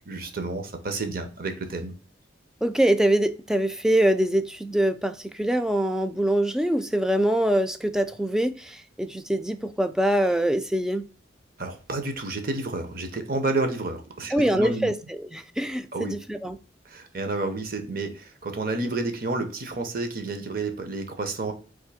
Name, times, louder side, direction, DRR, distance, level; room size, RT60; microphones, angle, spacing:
voice 1, 0.1-1.9 11.6-14.9 15.9-16.2 16.8-21.5, right 3 dB, 50° right, 0.8 m, -30 dB
voice 2, 2.6-11.0 14.3-14.9 15.3-16.6, right 1 dB, 5° right, 0.3 m, -24 dB
3.6 x 2.9 x 4.8 m
head